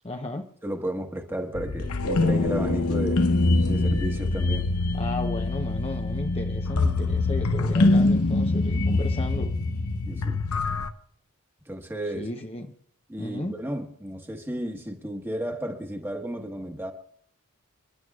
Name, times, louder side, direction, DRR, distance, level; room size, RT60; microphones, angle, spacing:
voice 1, 0.0-0.5 4.9-9.5 12.1-12.7 13.2-13.6, left 2 dB, 25° left, 0.8 m, -34 dB
voice 2, 0.6-3.3 3.6-4.7 10.0-10.4 11.7-12.3 13.1-16.9, right 1 dB, 10° right, 1.4 m, -33 dB
sound 1, 1.5-10.9, left 2 dB, 85° left, 0.9 m, -24 dB
28.5 x 11.0 x 2.4 m
head